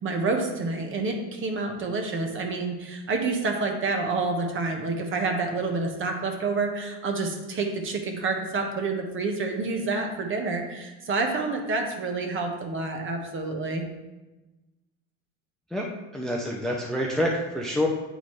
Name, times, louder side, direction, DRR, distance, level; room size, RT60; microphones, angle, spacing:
voice 1, 0.0-13.9, right 3 dB, 35° right, 3 dB, 1.2 m, -28 dB
voice 2, 16.1-17.9, left 1 dB, ahead, -1 dB, 0.6 m, -27 dB
9.0 x 3.9 x 3.2 m, 1.1 s
supercardioid pair, 105°, 37 cm